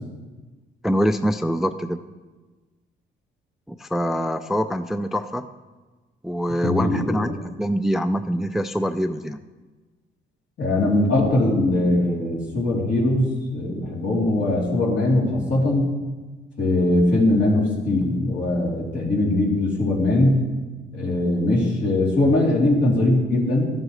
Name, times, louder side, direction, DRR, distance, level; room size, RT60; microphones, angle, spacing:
voice 1, 0.8-2.0 3.7-5.5 6.2-9.4, equal, ahead, 10 dB, 0.3 m, -24 dB
voice 2, 6.6-7.0 10.6-15.9 16.6-20.4 20.9-23.7, left 2 dB, 70° left, -5 dB, 3.2 m, -21 dB
13.0 x 7.5 x 3.2 m, 1.3 s
cardioid pair, 90°, 20 cm